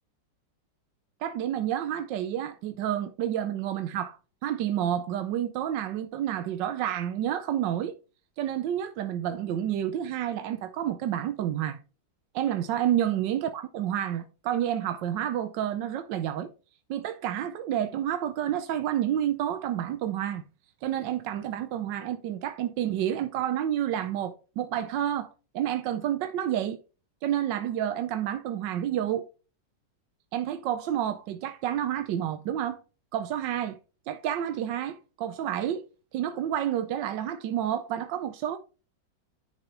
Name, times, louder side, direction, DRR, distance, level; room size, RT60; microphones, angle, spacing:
voice 1, 1.2-4.2 4.4-7.9 8.4-11.8 12.3-16.5 16.9-20.4 20.8-26.8 27.2-29.3 30.3-32.8 33.1-33.8 34.1-35.8 36.1-38.6, right 11 dB, 80° right, 1.3 m, -29 dB
10.5 x 5.3 x 3.1 m
omnidirectional pair, 2.0 m